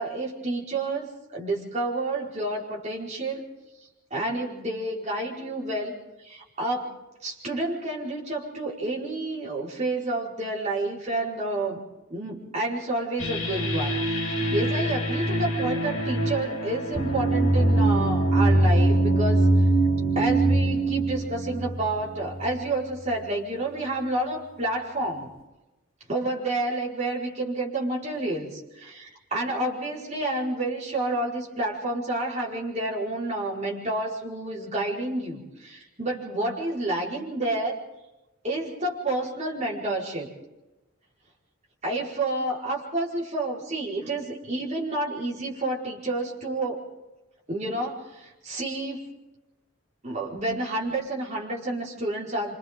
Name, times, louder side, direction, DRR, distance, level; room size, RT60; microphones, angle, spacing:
voice 1, 0.0-3.4 4.1-6.0 6.2-6.9 7.2-11.8 12.1-19.4 20.1-25.3 26.1-37.8 38.4-40.3 41.8-46.8 47.5-49.0 50.0-52.5, right 2 dB, 35° right, -4 dB, 5.0 m, -29 dB
sound 1, 13.2-22.5, right 1 dB, 65° left, 3.6 m, -23 dB
27.0 x 27.0 x 3.8 m, 1.0 s
head